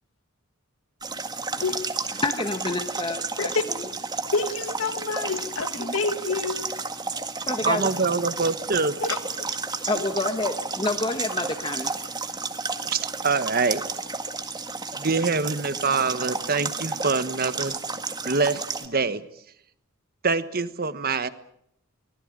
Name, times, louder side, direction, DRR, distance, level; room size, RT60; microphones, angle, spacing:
sound 1, 1.0-18.9, right 4 dB, 20° right, 1.8 m, -32 dB
voice 1, 2.2-3.8 5.8-5.9 7.5-8.2 9.9-11.9, left 2 dB, 25° left, 1.3 m, -29 dB
voice 2, 4.3-6.8 9.0-9.6 9.9-10.0, left 4 dB, 70° left, 2.0 m, -28 dB
voice 3, 7.6-9.0 12.9-13.8 14.9-17.8 18.2-19.2 20.2-21.3, right 4 dB, 45° right, 1.3 m, -25 dB
24.5 x 19.5 x 9.0 m
head